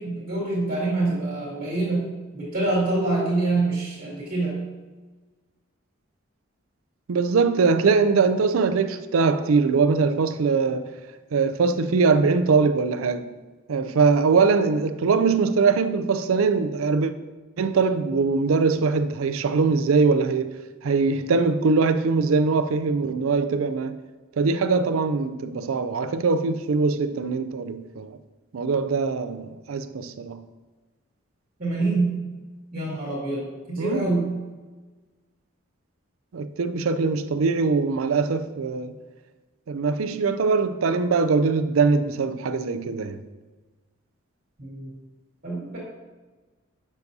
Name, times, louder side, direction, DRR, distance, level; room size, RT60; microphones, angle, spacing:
voice 1, 0.0-4.6 31.6-32.2 32.7-34.4 44.6-44.9 45.4-45.8, right 2 dB, 45° right, 2.2 m, -26 dB
voice 2, 7.1-10.8 11.3-13.3 13.7-17.1 17.6-20.6 20.8-24.0 24.4-28.2 28.5-30.4 33.8-34.1 36.3-39.0 39.7-43.2, right 4 dB, 85° right, 0.4 m, -22 dB
7.0 x 6.8 x 2.7 m
head